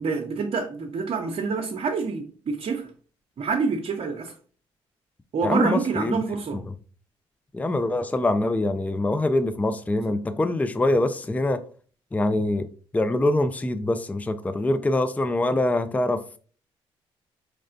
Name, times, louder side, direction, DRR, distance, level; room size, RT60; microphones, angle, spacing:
voice 1, 0.0-2.9 3.4-4.3 5.3-6.6, right 4 dB, 50° right, 0.6 m, -27 dB
voice 2, 5.4-6.2 6.5-6.7 7.5-11.6 12.1-16.2, left 2 dB, 10° left, 0.4 m, -24 dB
4.0 x 3.1 x 2.5 m
hypercardioid pair, 45°, 13 cm